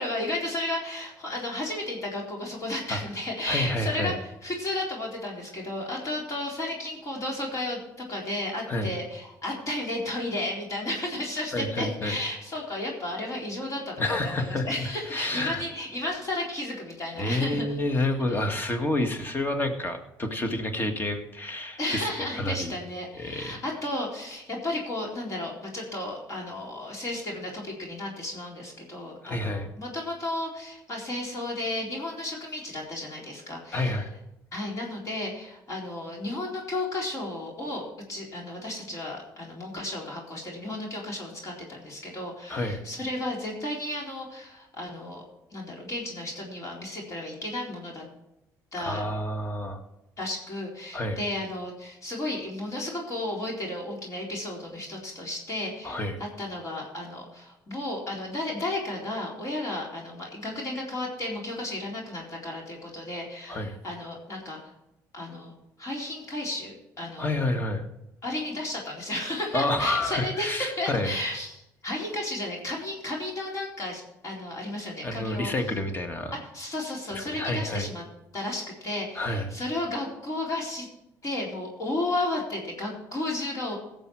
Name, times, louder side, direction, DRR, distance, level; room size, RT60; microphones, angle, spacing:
voice 1, 0.0-17.8 18.3-18.5 21.8-34.0 34.5-45.2 45.5-48.0 48.7-49.0 50.2-64.6 65.1-65.5 65.8-67.3 68.2-75.5 76.3-78.0 78.3-80.9 81.2-83.8, left 1 dB, 40° left, -2 dB, 4.0 m, -33 dB
voice 2, 3.4-4.2 8.7-8.9 11.5-12.2 14.0-15.6 17.2-22.1 22.3-22.7 23.2-23.6 29.2-29.7 33.7-34.1 42.5-42.8 48.9-49.8 50.9-51.2 55.8-56.2 63.5-63.8 67.2-67.8 69.5-71.1 75.0-76.3 77.1-77.9 79.2-79.5, left 1 dB, 25° left, 6 dB, 2.0 m, -29 dB
17.0 x 7.2 x 4.8 m, 0.89 s
supercardioid pair, 80°, 8 cm